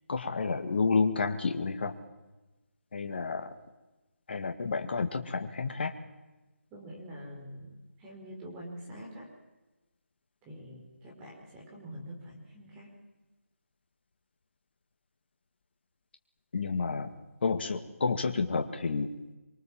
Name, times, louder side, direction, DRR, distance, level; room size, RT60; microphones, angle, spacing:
voice 1, 0.1-1.9 2.9-3.5 4.3-5.9 16.5-17.1 17.4-19.1, left 4 dB, 45° left, 5 dB, 2.1 m, -30 dB
voice 2, 6.7-9.3 10.4-12.9, equal, 15° right, -2 dB, 4.8 m, -45 dB
25.5 x 25.0 x 7.6 m, 1.1 s
figure-of-eight pair, 160°, 8 cm